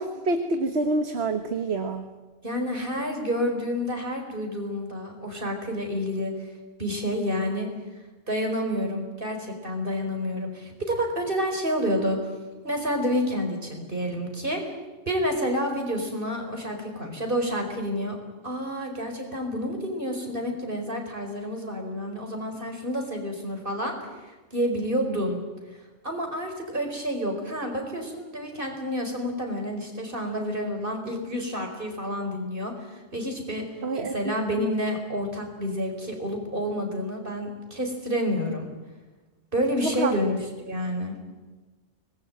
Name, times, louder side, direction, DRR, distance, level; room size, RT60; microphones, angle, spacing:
voice 1, 0.0-2.1 33.8-34.7 40.0-40.1, right 2 dB, 65° right, 7 dB, 1.6 m, -27 dB
voice 2, 2.4-6.3 6.8-7.7 8.3-12.2 12.6-14.6 15.1-18.2 18.4-23.9 24.5-25.4 26.0-33.6 34.0-38.7 39.5-41.2, equal, 50° right, 3 dB, 5.1 m, -29 dB
24.5 x 20.5 x 9.0 m, 1.2 s
omnidirectional pair, 1.2 m